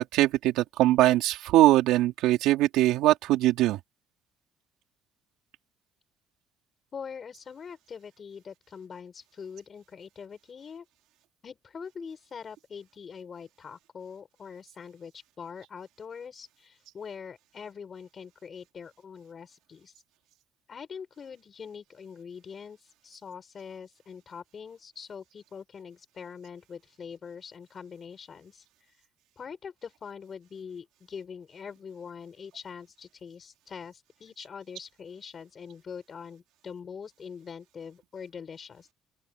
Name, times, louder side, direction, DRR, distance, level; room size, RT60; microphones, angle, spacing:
voice 1, 0.0-3.8, right 15 dB, 70° right, 4.1 m, -22 dB
voice 2, 6.9-10.8 11.4-20.0 20.7-29.1 29.4-38.9, left 6 dB, 25° left, 6.2 m, -43 dB
open air
cardioid pair, 175°, 0 cm